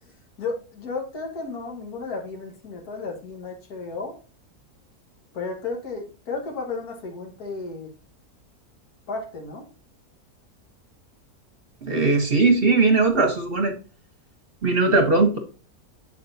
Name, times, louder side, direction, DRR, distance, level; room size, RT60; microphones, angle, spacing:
voice 1, 0.0-4.2 5.3-7.9 9.1-9.7, left 4 dB, 75° left, 1 dB, 2.0 m, -33 dB
voice 2, 11.8-13.7 14.6-15.4, right 3 dB, 45° right, 6 dB, 1.0 m, -19 dB
8.1 x 5.0 x 2.7 m, 0.35 s
omnidirectional pair, 1.6 m